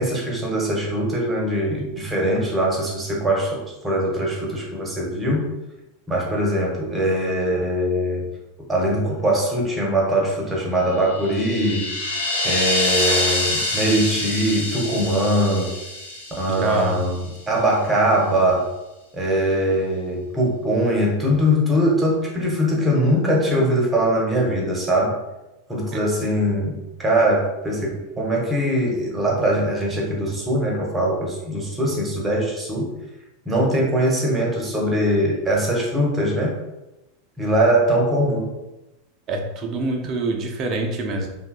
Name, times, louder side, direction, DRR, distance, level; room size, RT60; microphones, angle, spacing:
voice 1, 0.0-5.5 6.1-8.2 8.7-11.9 12.4-15.7 16.4-18.7 19.1-25.1 25.7-32.9 33.5-36.5 37.4-38.5, right 1 dB, 15° right, -2 dB, 0.8 m, -21 dB
sound 1, 11.0-17.2, left 1 dB, 80° left, 0.5 m, -26 dB
voice 2, 16.6-17.0 25.9-26.0 39.3-41.3, right 2 dB, 35° right, 2 dB, 0.5 m, -25 dB
2.7 x 2.3 x 2.2 m, 0.98 s
figure-of-eight pair, 85°, 0 cm